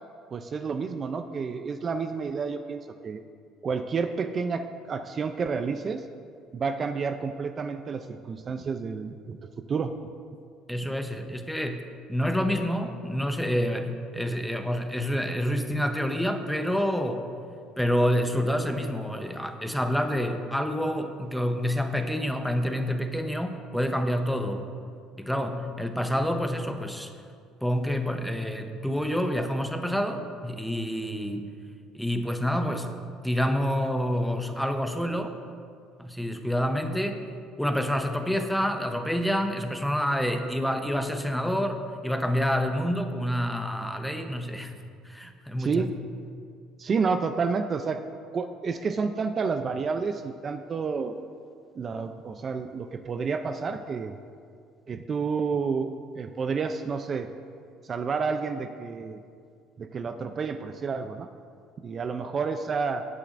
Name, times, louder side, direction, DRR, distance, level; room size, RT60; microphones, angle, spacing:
voice 1, 0.3-3.2 3.6-6.1 6.5-9.4 9.7-9.9 45.6-45.9 46.8-48.0 48.3-51.2 51.8-54.2 54.9-55.9 56.2-57.3 57.8-59.2 59.8-61.3 61.8-63.1, right 5 dB, 35° right, 8 dB, 0.5 m, -30 dB
voice 2, 10.7-11.8 12.1-17.3 17.8-24.7 25.2-27.1 27.6-31.5 31.9-35.3 36.0-37.2 37.6-44.8 45.0-45.8, equal, ahead, 6 dB, 0.8 m, -28 dB
17.0 x 8.5 x 2.6 m, 2.3 s
cardioid pair, 105°, 0 cm